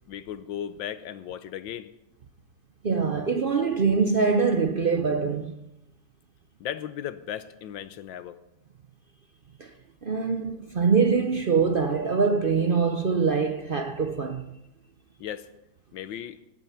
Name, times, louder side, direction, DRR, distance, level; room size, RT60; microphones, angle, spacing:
voice 1, 0.1-1.9 6.6-8.4 15.2-15.5 15.9-16.4, left 10 dB, 85° left, 1.6 m, -36 dB
voice 2, 2.8-5.5 9.6-9.7 10.0-14.4, right 5 dB, 70° right, 0.5 m, -24 dB
19.0 x 9.4 x 5.8 m
omnidirectional pair, 2.0 m